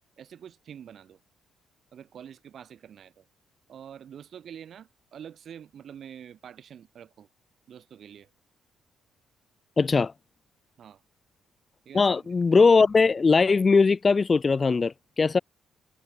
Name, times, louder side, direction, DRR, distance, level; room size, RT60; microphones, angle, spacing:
voice 1, 0.2-1.2 1.9-3.2 3.7-7.3 7.7-8.3 10.8-11.0 11.8-12.3, right 8 dB, 55° right, 2.7 m, -46 dB
voice 2, 9.8-10.1 11.9-15.4, left 4 dB, 30° left, 0.5 m, -20 dB
cardioid pair, 105°, 0 cm